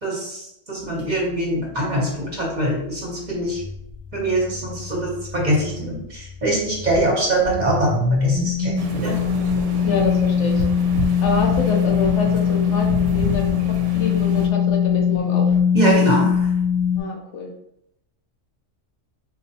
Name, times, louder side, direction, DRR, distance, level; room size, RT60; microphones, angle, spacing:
voice 1, 0.0-3.6 4.1-9.1 15.7-16.5, right 1 dB, 40° right, -3 dB, 0.9 m, -23 dB
sound 1, 3.5-7.0 7.4-17.0, left 7 dB, 15° right, 0.5 m, -22 dB
sound 2, 8.8-14.5, right 1 dB, 80° right, 0.9 m, -30 dB
voice 2, 9.8-10.6 11.2-13.6 13.9-15.6 17.0-17.5, left 4 dB, 75° left, 0 dB, 0.9 m, -26 dB
4.1 x 2.4 x 2.7 m, 0.80 s
omnidirectional pair, 1.3 m